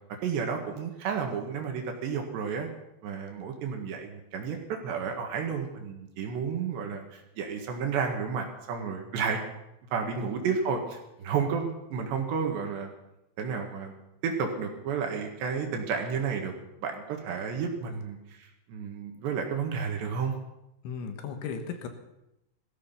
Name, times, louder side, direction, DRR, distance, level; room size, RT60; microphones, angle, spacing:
voice 1, 0.2-2.7 3.0-9.4 9.9-12.9 13.4-13.9 14.2-16.5 16.8-20.3, right 6 dB, 65° right, 3 dB, 3.5 m, -31 dB
voice 2, 20.8-21.9, left 6 dB, 70° left, 6 dB, 3.5 m, -36 dB
18.0 x 14.0 x 5.7 m, 0.88 s
omnidirectional pair, 6.0 m